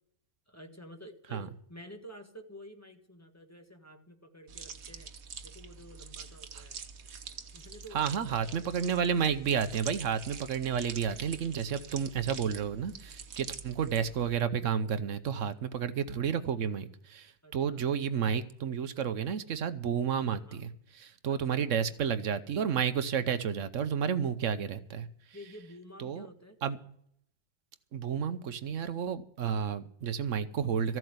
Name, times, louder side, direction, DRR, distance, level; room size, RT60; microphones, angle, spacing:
voice 1, 0.5-5.1 5.4-6.8 7.5-8.9 17.4-17.8 20.3-20.6 21.3-21.7 25.3-26.6, equal, 10° left, 5 dB, 1.4 m, -50 dB
sound 1, 4.5-14.4, right 6 dB, 90° right, 1.5 m, -45 dB
voice 2, 7.9-25.1 26.0-26.3 26.6-26.8 27.9-31.0, right 7 dB, 70° right, 12 dB, 1.1 m, -31 dB
14.5 x 7.7 x 8.0 m, 0.68 s
omnidirectional pair, 1.4 m